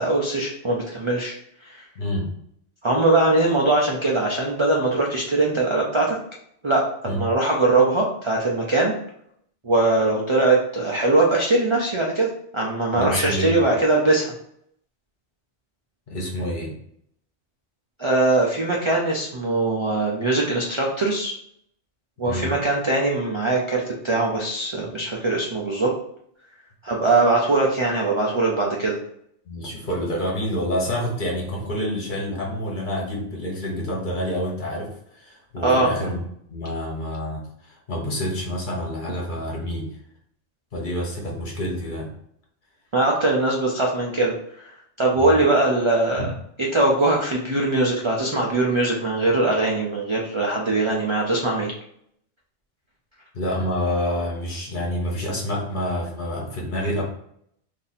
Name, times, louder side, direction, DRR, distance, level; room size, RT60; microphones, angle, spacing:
voice 1, 0.0-1.3 1.6-1.8 2.8-6.2 6.6-8.9 9.6-14.3 18.0-21.3 22.2-25.9 26.8-29.0 35.6-35.9 42.9-44.7 45.0-46.2 46.7-51.7, right 2 dB, 45° right, -2 dB, 0.3 m, -21 dB
voice 2, 2.0-2.3 7.0-7.2 12.9-13.5 16.1-16.7 22.2-22.6 29.5-34.9 35.1-36.2 36.5-39.9 40.7-42.1 45.1-45.4 46.2-46.3 53.3-57.0, equal, 45° left, -1 dB, 1.0 m, -28 dB
2.7 x 2.6 x 4.0 m, 0.70 s
omnidirectional pair, 1.2 m